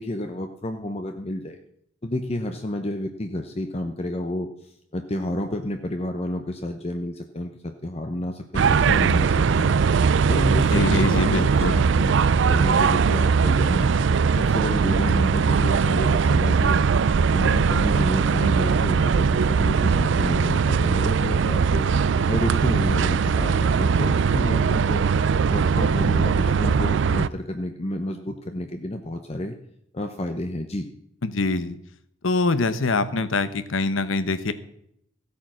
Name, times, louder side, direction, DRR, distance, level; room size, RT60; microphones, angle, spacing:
voice 1, 0.0-1.6 2.0-9.8 10.3-11.4 11.8-13.9 14.3-16.8 17.3-21.9 22.3-25.1 25.5-29.6 29.9-30.9, left 1 dB, 30° left, 6 dB, 0.8 m, -30 dB
sound 1, 8.5-27.3, right 5 dB, 60° right, 0.4 m, -20 dB
voice 2, 10.7-11.8 31.2-31.8 32.2-34.5, left 3 dB, 70° left, 13 dB, 1.0 m, -24 dB
15.5 x 8.4 x 6.2 m, 0.73 s
head